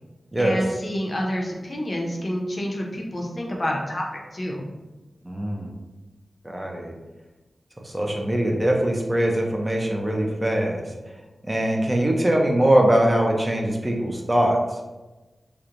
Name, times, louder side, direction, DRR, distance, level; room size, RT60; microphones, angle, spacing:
voice 1, 0.4-4.1 4.3-4.6, equal, 40° left, 0 dB, 0.5 m, -28 dB
voice 2, 5.2-5.7 6.4-6.9 7.8-10.9 11.4-14.6, right 1 dB, 20° right, 0 dB, 0.4 m, -22 dB
2.9 x 2.0 x 2.4 m, 1.1 s
wide cardioid pair, 80°, 0 cm